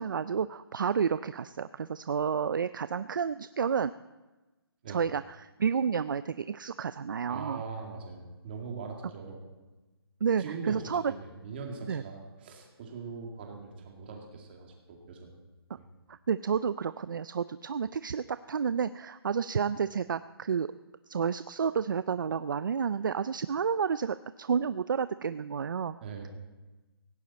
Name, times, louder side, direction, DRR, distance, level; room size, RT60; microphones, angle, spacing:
voice 1, 0.0-3.9 4.9-7.6 10.2-11.0 11.9-12.0 16.1-20.7 21.1-26.0, right 6 dB, 50° right, 14 dB, 0.4 m, -30 dB
voice 2, 7.3-9.4 10.4-15.3 15.8-15.9 26.0-26.3, right 4 dB, 25° right, 1 dB, 2.2 m, -41 dB
17.5 x 17.0 x 4.2 m, 1.2 s
hypercardioid pair, 175°, 13 cm